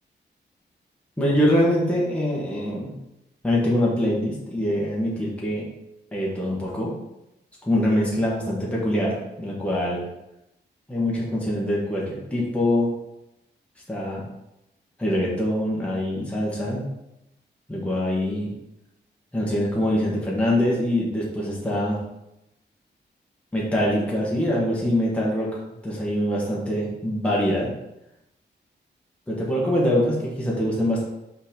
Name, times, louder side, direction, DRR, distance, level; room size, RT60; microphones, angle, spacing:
voice 1, 1.2-2.9 3.4-5.7 6.1-6.9 7.7-10.0 10.9-12.9 13.9-14.2 15.0-16.8 17.7-18.5 19.3-22.0 23.5-27.7 29.3-31.0, left 1 dB, 5° left, -5 dB, 1.5 m, -24 dB
5.5 x 4.0 x 5.2 m, 0.87 s
wide cardioid pair, 160°, 19 cm